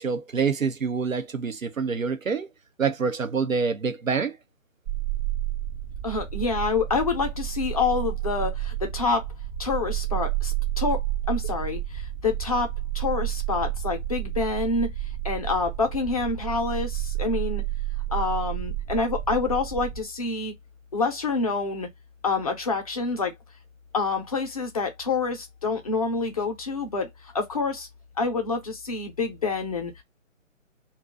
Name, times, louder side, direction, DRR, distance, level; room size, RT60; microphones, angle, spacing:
voice 1, 0.0-2.5 2.8-4.4, right 5 dB, 85° right, 0.9 m, -26 dB
sound 1, 4.9-20.0, right 13 dB, 35° right, 1.0 m, -30 dB
voice 2, 6.0-9.3 9.6-11.0 11.3-12.7 12.9-14.9 15.2-17.6 18.1-20.5 20.9-21.9 22.2-23.3 23.9-27.9 28.2-29.9, left 4 dB, 30° left, 0.6 m, -27 dB
2.7 x 2.3 x 3.7 m
figure-of-eight pair, 145°, 39 cm